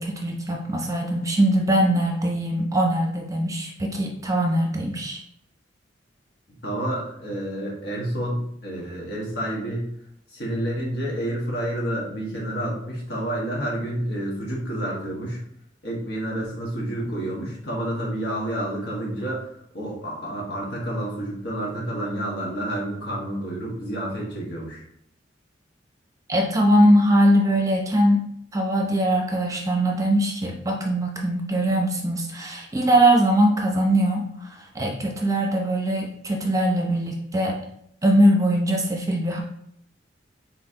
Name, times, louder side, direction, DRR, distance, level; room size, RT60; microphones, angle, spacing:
voice 1, 0.0-5.2 26.3-28.2 28.5-37.6 38.0-39.4, right 1 dB, 20° right, 0 dB, 0.7 m, -21 dB
voice 2, 6.6-9.9 10.3-15.4 15.8-19.5 19.7-24.8, right 1 dB, 70° left, -4 dB, 1.6 m, -29 dB
4.4 x 3.9 x 2.9 m, 0.72 s
head